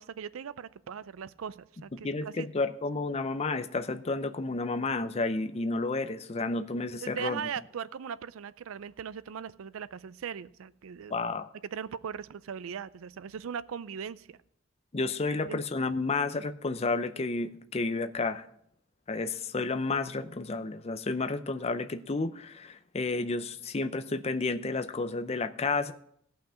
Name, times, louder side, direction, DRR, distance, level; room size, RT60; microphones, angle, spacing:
voice 1, 0.0-2.5 6.9-11.1 11.7-14.4 15.5-15.6, right 7 dB, 85° right, 18 dB, 0.4 m, -39 dB
voice 2, 1.9-7.4 11.1-11.5 14.9-18.4 19.1-25.9, left 3 dB, 30° left, 10 dB, 0.5 m, -31 dB
16.5 x 5.8 x 5.1 m, 0.70 s
head